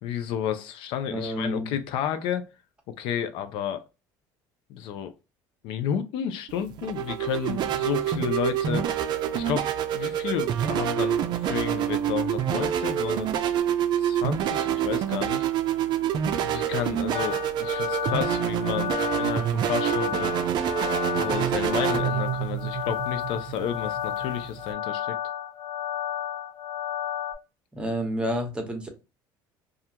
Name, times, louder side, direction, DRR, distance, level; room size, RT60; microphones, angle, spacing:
voice 1, 0.0-2.5 2.9-3.8 4.7-5.1 5.6-8.9 9.3-9.7 9.9-13.3 14.0-15.5 16.4-20.3 21.1-25.2, left 9 dB, 70° left, 0.4 m, -31 dB
voice 2, 1.1-1.7 27.7-28.9, equal, 10° right, 0.9 m, -29 dB
sound 1, 6.5-24.7, right 10 dB, 55° right, 0.4 m, -27 dB
sound 2, 17.1-27.3, left 10 dB, 40° left, 0.9 m, -32 dB
2.4 x 2.1 x 2.7 m
supercardioid pair, 100°, 9 cm